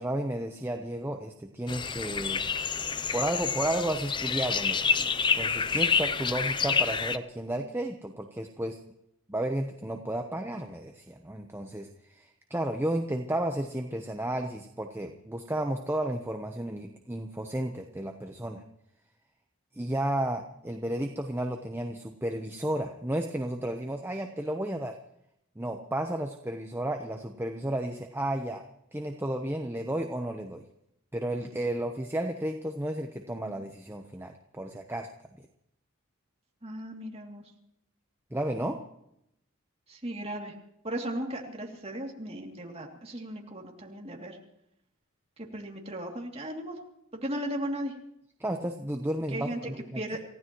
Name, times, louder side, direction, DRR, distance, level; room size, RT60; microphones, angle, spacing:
voice 1, 0.0-2.4 3.1-8.8 9.3-18.6 19.7-25.0 25.6-28.6 28.9-30.6 31.1-35.1 38.3-38.8 48.4-50.0, right 1 dB, 10° right, 4 dB, 0.9 m, -33 dB
sound 1, 1.7-7.2, left 6 dB, 20° left, 0.5 m, -28 dB
voice 2, 36.6-37.4 39.9-40.5 40.8-44.4 45.4-46.7 47.1-47.9 49.3-50.2, right 1 dB, 30° right, 0 dB, 2.7 m, -36 dB
28.5 x 15.5 x 3.1 m, 0.78 s
head